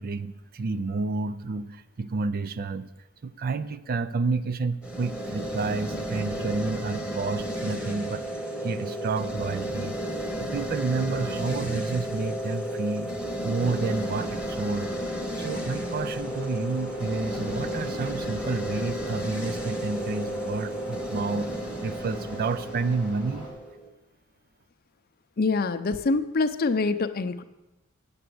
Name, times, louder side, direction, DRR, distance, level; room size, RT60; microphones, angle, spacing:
voice 1, 0.0-2.9 3.2-8.2 8.6-10.0 10.4-13.1 13.4-14.9 15.4-21.5 21.8-23.5, right 4 dB, 45° right, 14 dB, 0.4 m, -30 dB
sound 1, 4.8-23.9, equal, 5° right, 1.1 m, -33 dB
sound 2, 13.6-23.5, left 1 dB, 85° right, 3.2 m, -44 dB
voice 2, 25.4-27.4, left 3 dB, 45° left, 11 dB, 0.6 m, -25 dB
8.7 x 6.9 x 7.8 m, 1.0 s
head